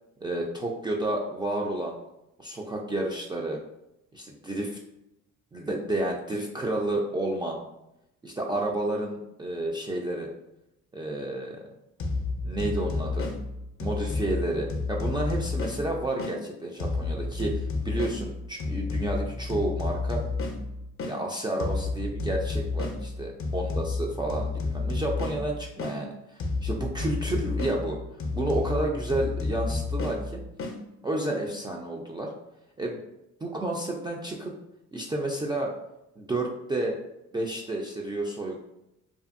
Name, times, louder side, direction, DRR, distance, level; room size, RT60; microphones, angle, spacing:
voice 1, 0.2-2.0 2.4-3.6 4.1-4.8 5.5-7.6 8.2-10.3 10.9-11.7 12.4-13.3 13.8-20.2 21.1-28.0 28.3-30.4 31.0-32.3 32.8-33.0 33.4-34.5 34.9-35.7 36.2-37.0 37.3-38.6, right 1 dB, 15° right, -1 dB, 0.3 m, -31 dB
sound 1, 12.0-16.4 16.8-21.2 21.6-26.0 26.4-30.8, left 3 dB, 45° left, 0.5 m, -31 dB
2.5 x 2.5 x 2.5 m, 0.86 s
cardioid pair, 90°, 30 cm